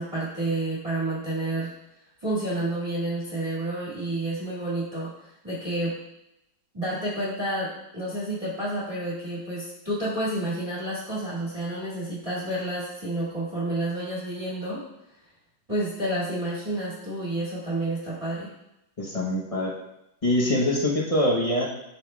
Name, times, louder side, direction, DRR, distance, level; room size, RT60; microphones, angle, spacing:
voice 1, 0.0-1.7 2.2-5.9 6.7-14.8 15.7-18.5, right 1 dB, 20° right, -9 dB, 2.0 m, -30 dB
voice 2, 19.0-19.7 20.2-21.7, left 1 dB, 30° left, -3 dB, 0.7 m, -24 dB
12.0 x 4.2 x 2.3 m, 0.84 s
omnidirectional pair, 2.0 m